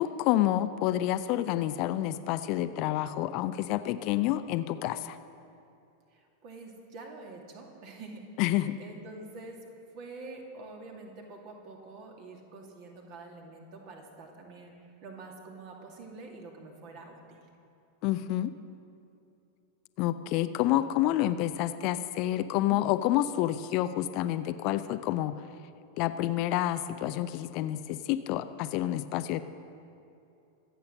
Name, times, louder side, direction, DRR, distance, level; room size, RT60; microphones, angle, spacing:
voice 1, 0.0-5.2 8.4-8.8 18.0-18.5 20.0-25.3 26.0-29.4, left 13 dB, 45° left, 11 dB, 0.5 m, -28 dB
voice 2, 6.4-8.2 8.8-9.6 9.9-14.7 15.0-17.4 22.5-22.8, right 3 dB, 45° right, 1 dB, 2.6 m, -46 dB
24.0 x 8.2 x 6.5 m, 2.7 s
figure-of-eight pair, 90°, 0 cm